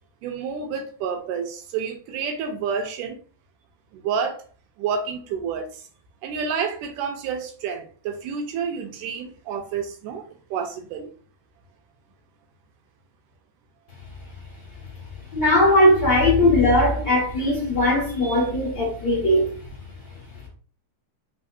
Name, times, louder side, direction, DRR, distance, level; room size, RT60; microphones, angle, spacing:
voice 1, 0.2-3.2 3.9-4.5 4.8-5.9 6.2-11.1, right 6 dB, 80° right, 2.2 m, -29 dB
voice 2, 15.3-19.6, left 1 dB, 40° left, 1.7 m, -19 dB
4.2 x 4.1 x 2.6 m
omnidirectional pair, 3.8 m